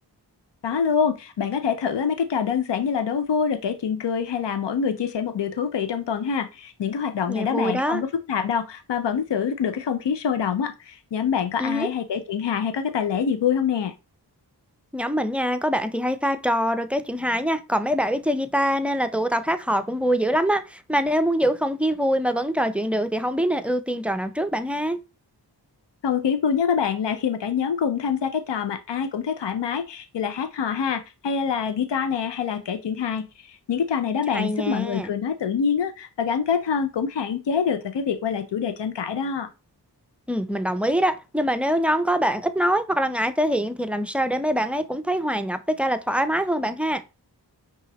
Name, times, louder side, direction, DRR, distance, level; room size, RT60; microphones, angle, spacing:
voice 1, 0.6-13.9 26.0-39.5, left 7 dB, 85° left, 0.6 m, -25 dB
voice 2, 7.3-8.0 11.6-11.9 14.9-25.0 34.3-35.1 40.3-47.0, equal, 5° right, 0.4 m, -24 dB
5.5 x 2.4 x 3.0 m
wide cardioid pair, 45°, 42 cm